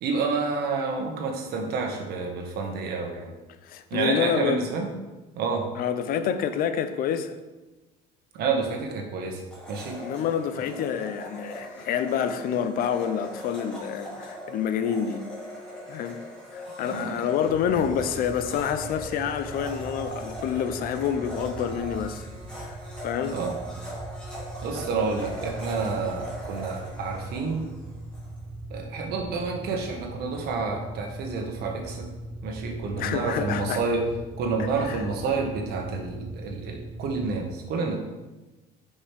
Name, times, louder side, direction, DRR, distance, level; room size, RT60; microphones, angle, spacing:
voice 1, 0.0-3.3 3.9-4.9 5.4-5.6 8.3-9.4 9.7-9.9 16.8-17.3 23.3-23.5 24.6-27.6 28.7-32.1 32.4-34.0 34.4-38.0, right 4 dB, 65° right, 1.5 m, -29 dB
voice 2, 3.6-4.7 5.7-7.3 10.0-15.2 15.9-16.2 16.5-22.3 22.6-22.8 23.0-23.4 33.0-33.8 34.6-35.0, left 8 dB, 55° left, 0.6 m, -28 dB
Domestic sounds home sounds, 9.5-28.3, equal, 5° left, 2.5 m, -40 dB
sound 1, 17.5-37.4, right 2 dB, 25° right, 0.8 m, -40 dB
9.9 x 5.4 x 3.5 m
cardioid pair, 140°, 18 cm